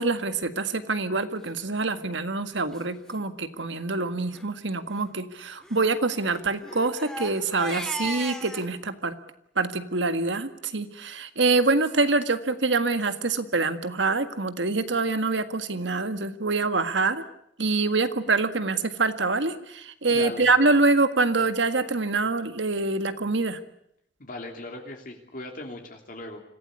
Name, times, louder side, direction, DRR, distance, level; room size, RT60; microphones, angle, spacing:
voice 1, 0.0-9.2 9.6-17.2 17.6-23.6, right 3 dB, 80° right, 9 dB, 1.8 m, -25 dB
Crying sobbing, 1.8-2.1 2.7-2.8 3.1-3.2 3.5-3.8 4.2-4.5 5.6-8.7, equal, 5° left, 2.4 m, -38 dB
voice 2, 20.1-20.5 24.2-26.4, left 2 dB, 50° left, 2 dB, 3.2 m, -38 dB
26.0 x 16.5 x 9.8 m, 0.76 s
head